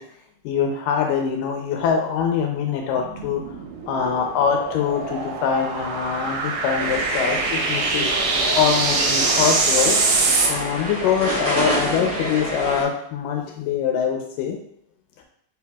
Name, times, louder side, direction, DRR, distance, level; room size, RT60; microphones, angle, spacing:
voice 1, 0.4-3.4 3.9-8.1 8.6-10.0 10.5-14.6, left 7 dB, 80° left, 2 dB, 2.2 m, -23 dB
sound 1, 3.0-10.5, right 3 dB, 75° right, 2.3 m, -24 dB
sound 2, 6.8-12.8, equal, 55° right, 1.0 m, -27 dB
5.2 x 4.5 x 2.3 m, 0.66 s
omnidirectional pair, 4.0 m